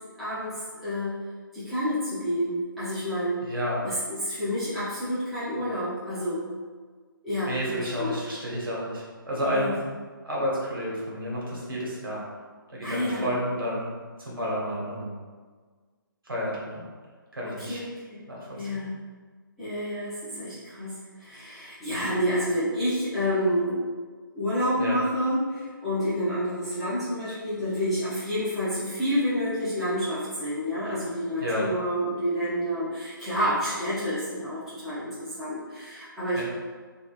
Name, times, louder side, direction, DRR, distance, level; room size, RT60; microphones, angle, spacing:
voice 1, 0.2-0.5 0.8-1.2 1.5-3.4 3.8-6.4 7.2-8.2 9.4-9.7 12.8-13.3 17.4-18.2 18.5-19.0 19.6-23.8 24.3-36.4, equal, ahead, -16 dB, 1.1 m, -29 dB
voice 2, 3.4-3.8 7.5-9.8 10.2-12.2 12.7-13.9 14.2-15.1 16.2-16.8 17.3-17.8 18.3-18.8 24.8-25.0 31.4-31.7 36.3-36.4, equal, 70° right, -6 dB, 1.3 m, -30 dB
3.6 x 2.6 x 2.5 m, 1.5 s
figure-of-eight pair, 145°, 12 cm